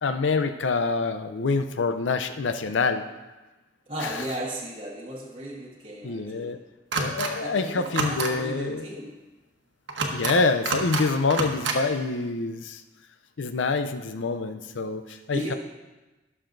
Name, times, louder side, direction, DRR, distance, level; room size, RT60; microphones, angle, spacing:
voice 1, 0.0-3.0 6.0-6.6 6.9-8.9 10.1-12.8 13.4-15.5, left 4 dB, 80° left, 9 dB, 0.5 m, -26 dB
voice 2, 3.8-6.6 7.4-9.2 15.1-15.5, right 1 dB, 30° right, -5 dB, 1.1 m, -35 dB
sound 1, 6.9-7.3 7.9-8.3 9.9-10.4 10.7-11.0 11.3-11.8, right 3 dB, 75° right, 1.2 m, -27 dB
18.0 x 6.5 x 2.6 m, 1.1 s
head